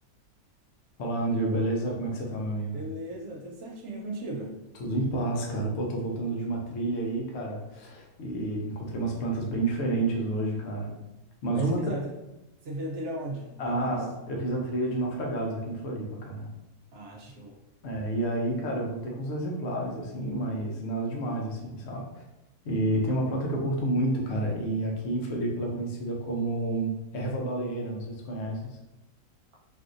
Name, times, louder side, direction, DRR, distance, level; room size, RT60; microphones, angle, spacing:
voice 1, 1.0-2.8 4.8-10.9 11.4-11.8 13.6-16.5 17.8-22.2 22.6-28.8, right 1 dB, 60° left, -1 dB, 0.8 m, -30 dB
voice 2, 2.7-4.5 11.5-12.1 12.6-14.0 16.9-17.6, right 2 dB, 65° right, -1 dB, 0.8 m, -36 dB
3.5 x 2.6 x 2.5 m, 0.96 s
omnidirectional pair, 1.6 m